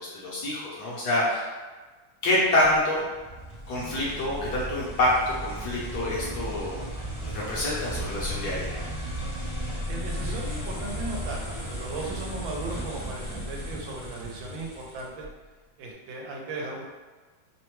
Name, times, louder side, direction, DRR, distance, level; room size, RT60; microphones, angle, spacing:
voice 1, 0.0-1.5 2.2-3.0 3.7-6.8 7.2-8.7, left 1 dB, 65° left, -6 dB, 1.1 m, -26 dB
sound 1, 2.6-15.3, equal, 25° left, 0.7 m, -35 dB
voice 2, 9.9-11.4 11.7-15.3 15.8-16.9, right 2 dB, 85° right, -1 dB, 1.4 m, -36 dB
3.3 x 2.1 x 3.0 m, 1.3 s
omnidirectional pair, 2.1 m